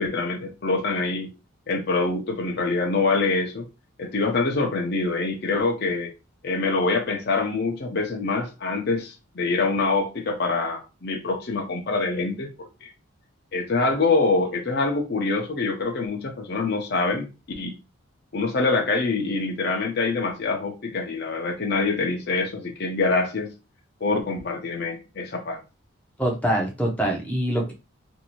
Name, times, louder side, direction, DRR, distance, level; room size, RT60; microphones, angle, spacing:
voice 1, 0.0-1.3 1.7-3.7 4.0-6.1 6.4-12.9 13.5-17.3 17.6-17.7 18.3-23.5 24.0-25.6, left 3 dB, 50° left, 0.6 m, -25 dB
voice 2, 26.2-27.7, right 1 dB, 5° left, 0.6 m, -24 dB
2.7 x 2.5 x 2.9 m
head